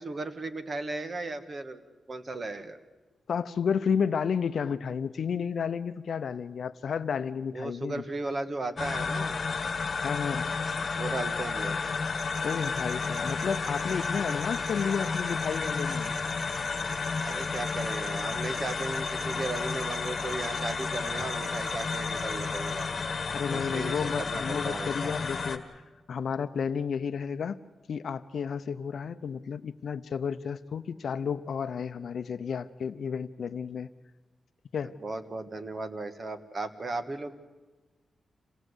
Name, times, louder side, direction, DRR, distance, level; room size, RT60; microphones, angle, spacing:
voice 1, 0.0-1.8 2.1-2.8 7.5-9.3 11.0-11.8 17.2-22.9 23.5-25.1 35.0-37.3, right 2 dB, 35° right, 9 dB, 1.5 m, -36 dB
voice 2, 3.3-8.0 10.0-10.5 12.4-16.1 23.3-25.7 26.1-27.6 27.9-33.9 34.7-35.0, left 6 dB, 65° left, 12 dB, 0.7 m, -32 dB
sound 1, 8.8-25.6, left 4 dB, 40° left, 1.7 m, -32 dB
sound 2, 12.0-22.9, right 4 dB, 80° right, 2.1 m, -48 dB
27.0 x 17.5 x 8.1 m, 1.3 s
wide cardioid pair, 125°, 0 cm